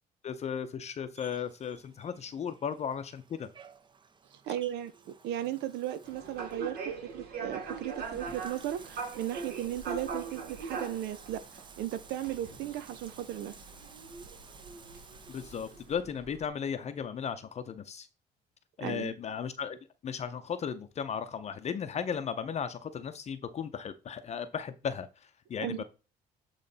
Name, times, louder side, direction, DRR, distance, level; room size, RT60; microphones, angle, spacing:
voice 1, 0.2-3.5 15.3-18.1 18.8-19.8 20.0-25.8, left 7 dB, 40° left, 0.6 m, -36 dB
Bathtub (filling or washing), 1.1-16.0, right 5 dB, 30° right, 0.8 m, -55 dB
voice 2, 4.3-13.5 18.8-19.2 25.6-25.8, right 12 dB, 80° right, 0.6 m, -36 dB
sound 1, 6.0-16.5, right 5 dB, 65° right, 2.4 m, -42 dB
8.5 x 3.2 x 4.0 m
cardioid pair, 110°, 17 cm